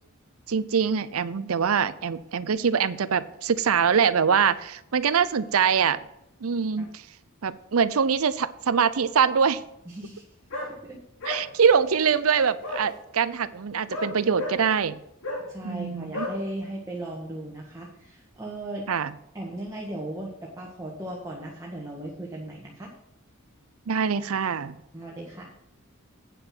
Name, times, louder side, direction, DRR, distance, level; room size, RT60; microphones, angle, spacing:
voice 1, 0.5-6.0 6.4-7.0 7.4-9.6 11.3-15.0 15.6-16.3 18.9-19.1 23.9-24.8, right 6 dB, 90° right, 15 dB, 0.6 m, -23 dB
voice 2, 9.8-10.2 10.6-11.0 15.5-18.9 19.3-22.9 24.9-25.5, right 1 dB, 15° right, -3 dB, 1.6 m, -37 dB
sound 1, 10.5-10.7 11.2-11.4 12.6-12.8 13.9-14.6 15.2-15.4 16.1-16.3, left 2 dB, 60° left, 3.1 m, -32 dB
9.1 x 6.7 x 6.0 m, 0.81 s
head